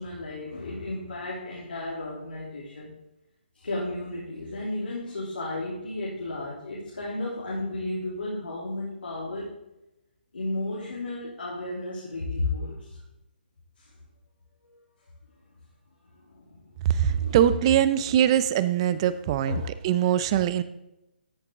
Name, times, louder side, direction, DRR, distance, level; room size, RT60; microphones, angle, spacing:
voice 1, 0.0-2.9 3.5-9.5 10.3-13.0 13.8-13.9 14.6-14.8 16.3-16.7 17.1-17.4 19.5-19.7, left 2 dB, 80° left, -6 dB, 3.2 m, -33 dB
voice 2, 16.8-19.6 19.8-20.6, right 10 dB, 30° right, 14 dB, 0.6 m, -22 dB
13.5 x 6.7 x 3.7 m, 0.91 s
figure-of-eight pair, 145°, 6 cm